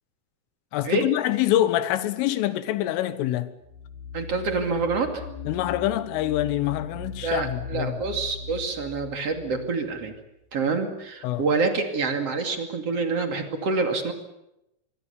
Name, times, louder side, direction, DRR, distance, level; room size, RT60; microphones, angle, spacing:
voice 1, 0.7-3.5 5.5-8.0 11.2-11.5, left 13 dB, 80° left, 3.7 m, -25 dB
sound 1, 3.6-10.3, left 5 dB, 55° left, 3.7 m, -39 dB
voice 2, 4.1-5.2 7.2-10.1 10.5-14.1, right 4 dB, 40° right, 2.6 m, -27 dB
24.5 x 23.5 x 7.1 m
omnidirectional pair, 5.9 m